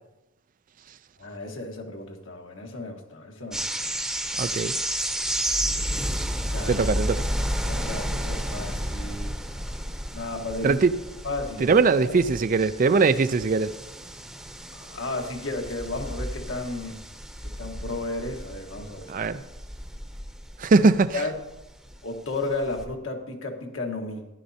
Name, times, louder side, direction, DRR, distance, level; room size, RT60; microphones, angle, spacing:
voice 1, 1.2-3.9 6.5-6.9 7.6-9.3 10.1-10.8 11.2-12.2 14.7-17.0 17.4-19.4 20.7-20.8 21.1-21.4 22.0-24.3, left 2 dB, 75° left, 2 dB, 1.5 m, -33 dB
sound 1, 3.5-22.1 22.4-22.9, equal, 5° right, 0.8 m, -32 dB
voice 2, 4.4-4.7 6.7-7.2 10.6-10.9 11.6-13.7 19.1-19.4 20.6-21.2, right 4 dB, 40° right, 13 dB, 0.4 m, -21 dB
14.5 x 11.0 x 2.8 m, 0.99 s
head